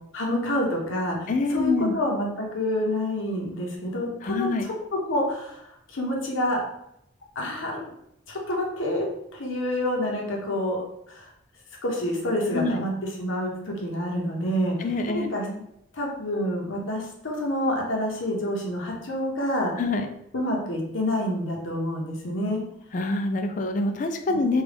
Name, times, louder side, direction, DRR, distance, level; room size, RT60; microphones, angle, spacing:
voice 1, 0.1-4.5 5.1-6.6 7.4-7.8 8.3-9.1 9.3-10.8 11.1-11.2 11.8-14.8 15.1-15.5 15.9-19.7 20.3-22.6, left 1 dB, 85° left, -1 dB, 0.9 m, -28 dB
voice 2, 1.3-1.9 4.2-4.6 12.5-12.8 14.8-15.6 19.8-20.1 22.9-24.6, left 3 dB, 40° left, 6 dB, 0.3 m, -26 dB
3.6 x 2.4 x 3.4 m, 0.76 s
head